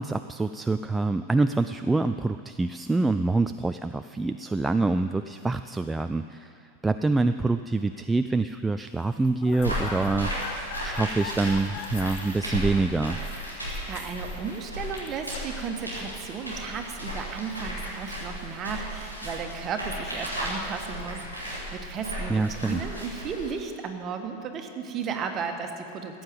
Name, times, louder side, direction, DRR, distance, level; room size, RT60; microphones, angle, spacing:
voice 1, 0.0-13.2 22.3-22.8, right 3 dB, 10° right, 9 dB, 0.3 m, -26 dB
sound 1, 9.1-15.6, left 6 dB, 50° left, 1.0 m, -42 dB
sound 2, 9.6-23.5, equal, 85° left, 4.3 m, -35 dB
voice 2, 13.6-26.2, right 6 dB, 30° right, 5 dB, 1.5 m, -35 dB
15.0 x 8.7 x 7.8 m, 2.6 s
figure-of-eight pair, 90°, 0 cm